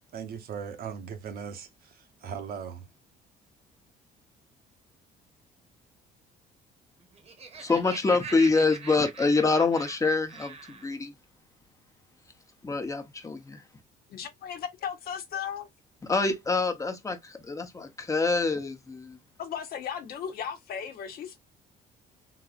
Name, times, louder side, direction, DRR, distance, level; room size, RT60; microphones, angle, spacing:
voice 1, 0.1-2.9, right 7 dB, 60° right, 0.9 m, -38 dB
Laughter, 7.0-10.9, right 5 dB, 35° right, 1.0 m, -43 dB
voice 2, 7.6-11.1 12.6-13.6 16.1-19.2, left 3 dB, 20° left, 0.9 m, -26 dB
voice 3, 14.1-15.7 19.4-21.4, left 8 dB, 65° left, 1.0 m, -36 dB
3.9 x 2.8 x 2.4 m
cardioid pair, 110°, 17 cm